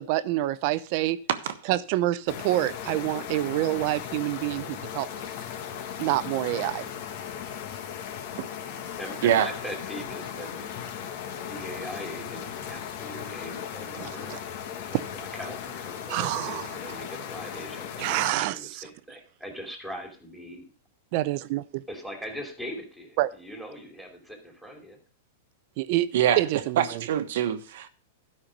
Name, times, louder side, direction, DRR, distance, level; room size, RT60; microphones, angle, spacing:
voice 1, 0.0-1.2 1.6-5.1 6.0-6.9 8.4-8.5 14.0-14.4 14.9-15.0 16.1-16.6 18.0-18.8 21.1-21.8 23.2-23.3 25.8-26.1 26.4-27.0, right 16 dB, 45° right, 0.6 m, -27 dB
sound 1, 2.3-18.3, left 8 dB, 50° left, 1.5 m, -37 dB
voice 2, 9.0-11.1 11.5-14.4 14.7-20.6 21.9-25.0, equal, ahead, 2.8 m, -41 dB
voice 3, 26.8-27.9, right 10 dB, 65° right, 1.2 m, -24 dB
13.0 x 5.8 x 5.2 m
supercardioid pair, 150°, 0 cm